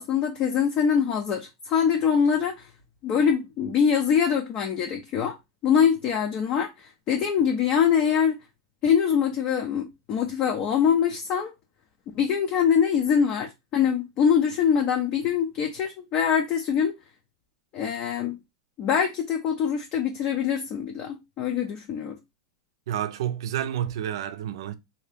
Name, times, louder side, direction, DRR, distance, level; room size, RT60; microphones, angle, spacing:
voice 1, 0.0-2.7 3.0-5.4 5.6-8.4 8.8-11.5 12.1-17.0 17.7-18.4 18.8-22.2, left 7 dB, 40° left, 0.6 m, -24 dB
voice 2, 22.9-24.7, right 10 dB, 70° right, 0.5 m, -29 dB
2.8 x 2.7 x 3.3 m
hypercardioid pair, 120°, 3 cm